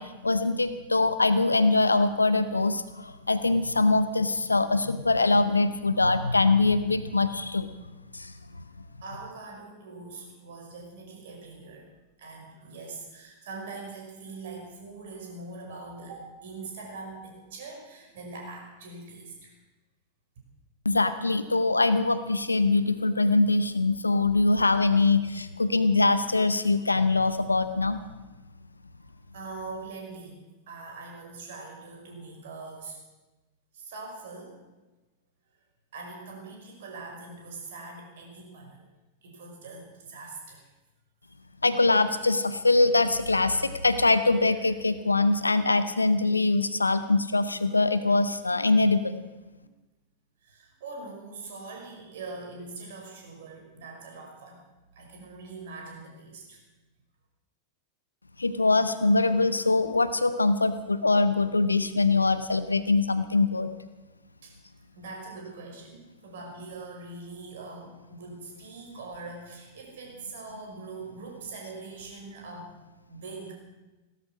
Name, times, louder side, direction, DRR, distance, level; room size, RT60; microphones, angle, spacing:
voice 1, 0.0-7.7 8.1-8.3 20.8-28.0 41.6-49.2 58.4-63.7, left 3 dB, 80° left, 13 dB, 0.7 m, -23 dB
voice 2, 9.0-11.9 12.2-19.5 29.0-30.4 30.7-33.0 33.7-34.6 35.9-38.9 39.2-40.7 50.4-54.6 54.9-56.6 64.4-64.5 64.9-72.8 73.1-73.5, right 3 dB, 60° right, 0 dB, 5.3 m, -42 dB
17.5 x 13.0 x 6.2 m, 1.1 s
figure-of-eight pair, 90°, 0 cm